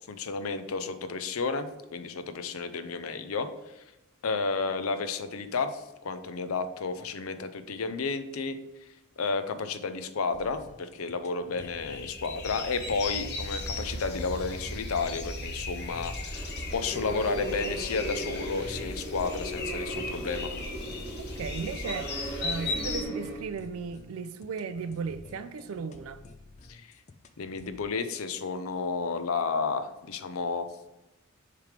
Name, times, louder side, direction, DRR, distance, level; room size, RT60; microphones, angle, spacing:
voice 1, 0.1-3.5 3.7-3.8 4.2-8.9 9.2-16.4 16.7-20.5 26.7-26.9 27.4-30.7, left 4 dB, 85° left, 0.6 m, -32 dB
sound 1, 10.3-27.9, left 3 dB, 35° left, 0.4 m, -51 dB
sound 2, 11.5-23.0, left 2 dB, 50° left, 1.1 m, -36 dB
sound 3, 16.3-23.4, right 1 dB, 15° right, 1.8 m, -38 dB
voice 2, 21.2-26.2, right 5 dB, 80° right, 0.4 m, -36 dB
6.7 x 3.3 x 5.0 m
head